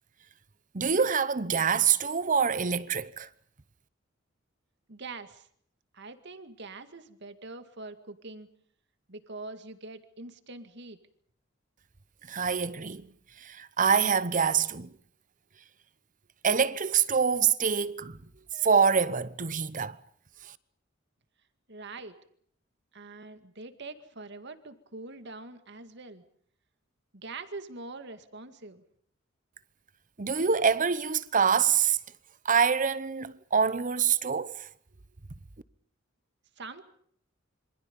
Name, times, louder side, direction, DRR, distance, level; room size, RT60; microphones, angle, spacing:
voice 1, 0.7-3.3 12.3-13.1 13.4-14.9 16.4-18.2 18.5-20.0 30.2-32.0 32.4-34.7, right 6 dB, 40° right, 0.9 m, -25 dB
voice 2, 4.9-5.5 5.9-8.5 9.1-11.0 21.7-22.2 22.9-26.2 27.1-28.8 36.6-36.9, right 3 dB, 60° right, 2.1 m, -44 dB
27.5 x 25.5 x 5.5 m
head